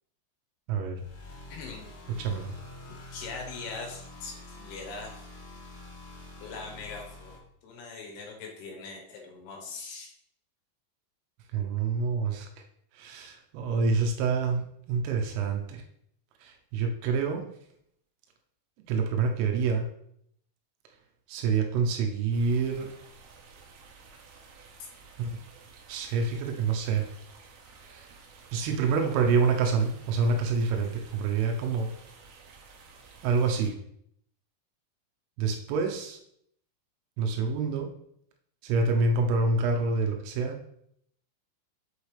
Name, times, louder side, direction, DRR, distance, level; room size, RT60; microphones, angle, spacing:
voice 1, 0.7-1.0 2.2-2.5 11.5-12.5 12.9-15.8 16.4-17.4 18.9-19.9 21.3-22.9 25.2-25.3 25.9-27.0 27.8-28.1 28.5-31.9 33.2-33.8 35.4-36.2 37.2-37.9 38.6-40.6, right 4 dB, 85° right, 3 dB, 3.4 m, -27 dB
sound 1, 0.9-7.4, left 2 dB, 50° left, 2.2 m, -46 dB
voice 2, 1.5-1.9 3.1-5.2 6.4-10.1, left 4 dB, 70° left, 1 dB, 2.6 m, -41 dB
sound 2, 22.3-33.7, right 5 dB, 70° right, 3.1 m, -53 dB
8.2 x 7.3 x 3.3 m, 0.70 s
omnidirectional pair, 5.7 m